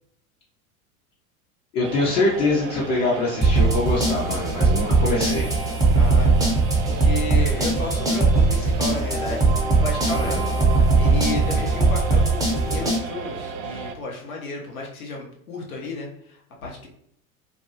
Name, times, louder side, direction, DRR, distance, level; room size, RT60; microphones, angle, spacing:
voice 1, 1.7-5.5 10.1-10.4, left 2 dB, 45° left, -5 dB, 0.8 m, -24 dB
sound 1, 1.8-13.9, right 5 dB, 70° right, 0.5 m, -34 dB
sound 2, 3.4-13.0, right 3 dB, 10° right, 0.6 m, -20 dB
voice 2, 6.0-9.5 9.8-10.4 10.9-16.9, left 3 dB, 80° left, -1 dB, 1.0 m, -33 dB
2.6 x 2.2 x 2.7 m, 0.69 s
hypercardioid pair, 85°, 42 cm